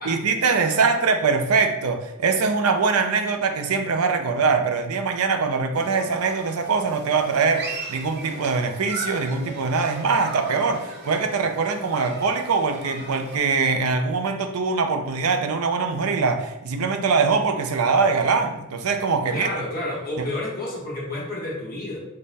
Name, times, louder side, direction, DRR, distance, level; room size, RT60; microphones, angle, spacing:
voice 1, 0.0-19.6 20.2-20.3, right 4 dB, 90° right, 7 dB, 0.5 m, -23 dB
Human group actions, 5.7-13.4, right 2 dB, 50° right, 0.8 m, -38 dB
voice 2, 19.3-22.0, left 1 dB, 45° left, -4 dB, 1.2 m, -30 dB
5.3 x 2.1 x 4.1 m, 0.90 s
head